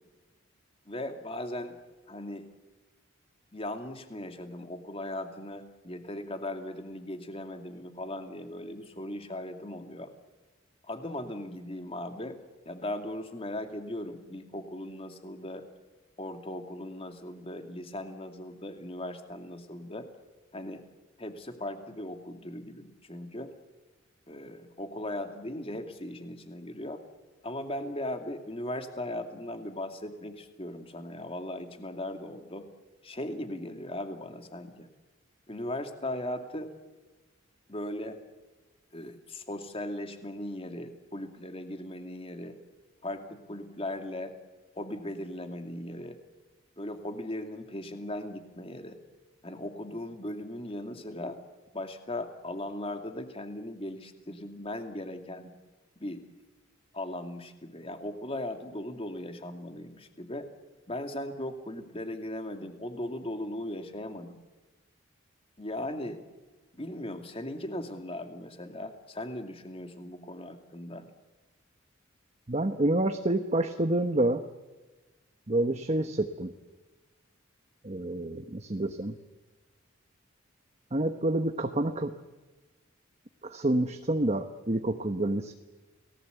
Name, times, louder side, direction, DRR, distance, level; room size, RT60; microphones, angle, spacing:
voice 1, 0.9-1.8 2.1-2.5 3.5-10.1 10.8-12.4 12.6-15.7 16.2-20.1 20.5-20.8 21.2-23.5 24.3-27.0 27.4-32.7 33.0-34.9 35.5-36.7 37.7-38.2 38.9-42.6 43.0-44.3 44.8-46.2 46.8-49.0 49.4-51.4 51.7-55.5 56.0-56.2 56.9-60.5 60.9-64.4 65.6-66.2 66.7-71.0, left 1 dB, 30° left, 6 dB, 2.4 m, -38 dB
voice 2, 72.5-74.4 75.5-76.5 77.8-79.1 80.9-82.1 83.4-85.5, right 1 dB, 35° right, 7 dB, 1.1 m, -28 dB
29.5 x 19.0 x 8.2 m, 1.2 s
head